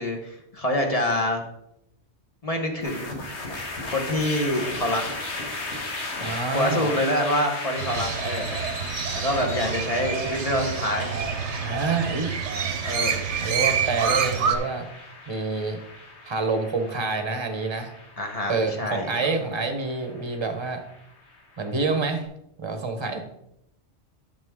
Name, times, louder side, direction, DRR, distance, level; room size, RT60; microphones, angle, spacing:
voice 1, 0.0-1.4 2.4-3.1 3.9-5.0 6.5-8.6 9.1-11.1 12.8-13.3 18.2-19.1, left 1 dB, 30° left, 2 dB, 1.3 m, -26 dB
sound 1, 2.8-22.1, left 2 dB, 75° left, 1.7 m, -37 dB
voice 2, 6.2-6.9 11.6-12.3 13.4-14.9 15.3-15.8 16.2-17.9 18.5-20.8 21.6-22.3 22.6-23.2, right 4 dB, 25° right, 6 dB, 1.0 m, -27 dB
Crow, 7.8-14.6, right 6 dB, 85° right, 1.2 m, -27 dB
9.3 x 6.9 x 3.7 m, 0.78 s
omnidirectional pair, 1.2 m